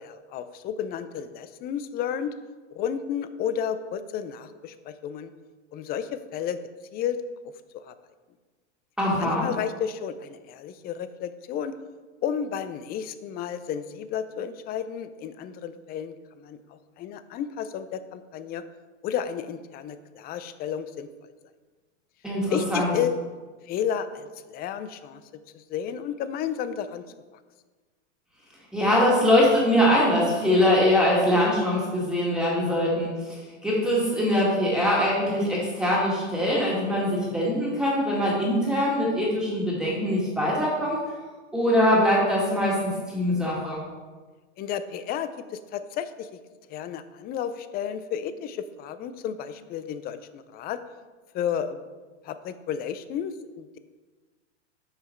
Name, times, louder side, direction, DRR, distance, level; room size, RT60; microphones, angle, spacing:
voice 1, 0.0-2.4 2.7-5.3 5.7-6.6 6.9-7.2 7.7-7.9 9.2-11.8 12.2-16.6 17.0-18.6 19.0-21.1 22.5-23.1 23.7-25.2 25.5-27.0 44.6-46.3 46.7-50.8 51.3-51.8 52.2-53.8, left 8 dB, 25° left, 12 dB, 0.5 m, -32 dB
voice 2, 9.0-9.5 22.2-22.9 28.7-41.0 41.5-43.8, left 1 dB, ahead, -6 dB, 2.0 m, -23 dB
7.9 x 5.5 x 4.5 m, 1.4 s
hypercardioid pair, 115°, 36 cm